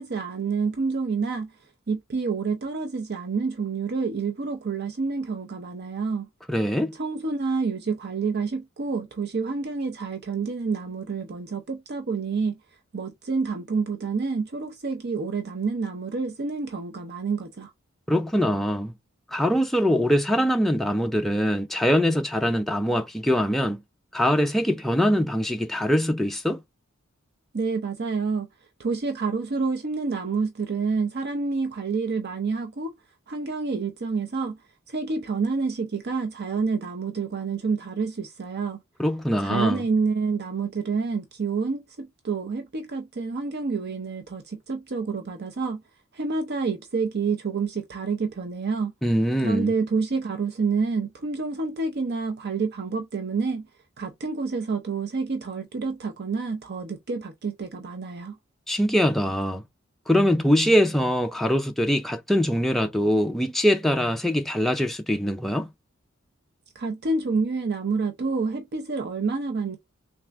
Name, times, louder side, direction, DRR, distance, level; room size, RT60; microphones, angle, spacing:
voice 1, 0.0-1.5 1.9-6.3 7.0-12.6 12.9-17.7 27.5-28.5 28.8-33.0 33.3-34.6 34.9-38.8 39.4-45.8 46.1-48.9 49.4-53.7 54.0-58.4 66.8-69.8, right 4 dB, 55° right, 0.6 m, -28 dB
voice 2, 6.5-7.0 18.1-18.9 19.3-23.8 24.1-26.6 39.0-39.8 49.0-49.7 58.7-59.6 60.1-65.7, equal, ahead, 0.3 m, -23 dB
3.5 x 2.4 x 3.4 m
head